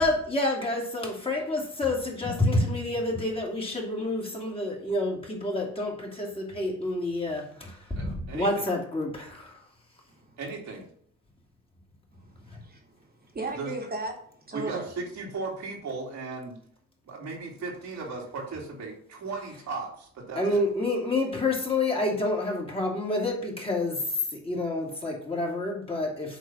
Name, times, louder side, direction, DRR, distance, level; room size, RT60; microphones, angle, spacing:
voice 1, 0.0-9.5 20.4-24.0 24.3-26.4, left 2 dB, 20° left, -1 dB, 2.5 m, -28 dB
voice 2, 8.0-8.7 10.4-10.8 13.6-13.7 14.5-16.6 17.0-20.6, right 4 dB, 65° right, -1 dB, 2.6 m, -36 dB
voice 3, 12.1-14.1 14.5-14.9, right 2 dB, 30° right, 1 dB, 2.1 m, -36 dB
8.3 x 3.3 x 5.8 m, 0.64 s
cardioid pair, 90°, 30 cm